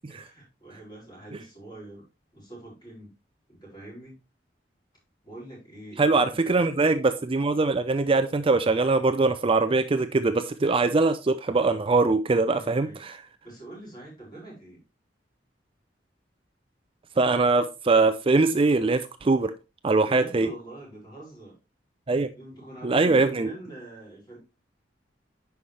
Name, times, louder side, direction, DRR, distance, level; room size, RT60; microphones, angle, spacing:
voice 1, 0.1-2.0 2.3-3.1 3.5-4.2 5.2-6.7 12.3-13.0 13.4-14.8 20.0-21.6 22.3-24.4, right 1 dB, 25° left, 5.6 m, -44 dB
voice 2, 6.0-13.2 17.2-19.5 19.8-20.5 22.1-22.3 22.8-23.5, right 3 dB, 30° right, 0.5 m, -22 dB
9.9 x 5.7 x 3.3 m
head